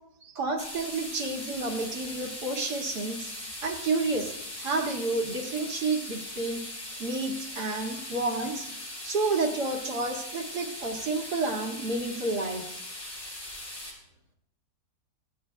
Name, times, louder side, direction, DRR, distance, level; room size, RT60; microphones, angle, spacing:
voice 1, 0.2-3.3 3.6-4.3 4.6-6.6 7.0-12.8, right 3 dB, 65° right, 0 dB, 2.6 m, -30 dB
sound 1, 0.6-13.9, left 1 dB, 80° left, 7.2 m, -40 dB
24.5 x 16.5 x 2.3 m, 0.81 s
omnidirectional pair, 1.9 m